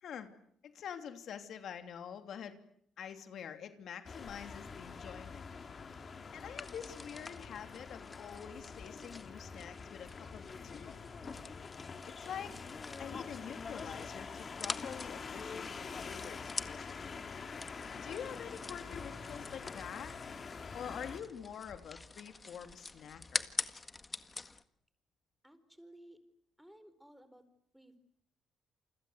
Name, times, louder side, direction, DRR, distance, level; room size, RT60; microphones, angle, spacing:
voice 1, 0.6-2.6 3.0-5.5 6.3-11.0 12.1-12.5 13.0-17.0 17.9-20.1 20.7-23.5, left 8 dB, 65° left, 8 dB, 2.9 m, -46 dB
sound 1, 4.0-21.2, left 5 dB, 40° left, 2.9 m, -45 dB
sound 2, 6.6-24.6, left 3 dB, 25° left, 1.7 m, -46 dB
voice 2, 25.4-26.2 26.6-27.5 27.7-28.0, right 1 dB, ahead, 12 dB, 4.6 m, -57 dB
29.0 x 25.0 x 8.1 m, 0.68 s
cardioid pair, 90°, 0 cm